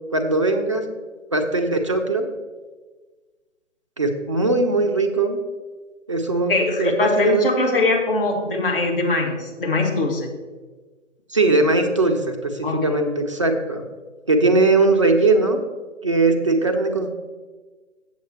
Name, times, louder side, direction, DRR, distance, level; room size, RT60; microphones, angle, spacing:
voice 1, 0.1-0.9 1.3-2.3 4.0-5.4 6.1-7.5 11.3-13.8 14.3-15.6 16.0-17.1, right 3 dB, 25° right, 4 dB, 0.5 m, -20 dB
voice 2, 6.5-10.3 12.6-12.8, left 2 dB, 45° left, 1 dB, 1.6 m, -21 dB
7.7 x 7.3 x 4.2 m, 1.3 s
figure-of-eight pair, 135°, 38 cm